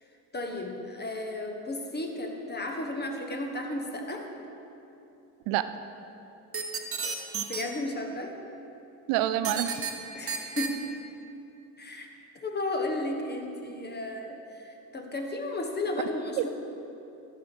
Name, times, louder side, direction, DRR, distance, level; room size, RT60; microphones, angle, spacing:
voice 1, 0.3-4.3 7.5-8.4 10.1-10.8 11.8-12.1 12.3-16.5, left 2 dB, 25° left, 3 dB, 1.4 m, -34 dB
sound 1, 6.5-7.6 9.4-9.9 10.3-10.7, right 6 dB, 30° right, 1.1 m, -31 dB
voice 2, 9.1-9.8 16.4-16.5, right 12 dB, 85° right, 12 dB, 0.6 m, -27 dB
13.5 x 4.9 x 6.2 m, 2.8 s
supercardioid pair, 85°, 42 cm